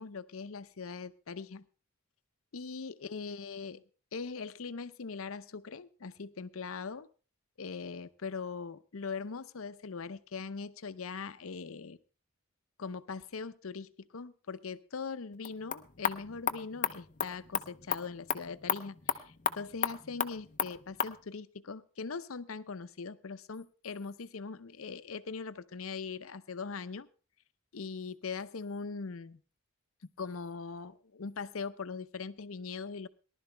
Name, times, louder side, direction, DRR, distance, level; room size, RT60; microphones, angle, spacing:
voice 1, 0.0-1.7 2.5-3.8 4.1-7.1 7.6-12.0 12.8-27.1 27.7-29.4 30.2-33.1, left 5 dB, 80° left, 13 dB, 0.7 m, -41 dB
sound 1, 15.3-21.2, left 7 dB, 40° left, 0.7 m, -35 dB
19.0 x 12.0 x 3.3 m, 0.35 s
head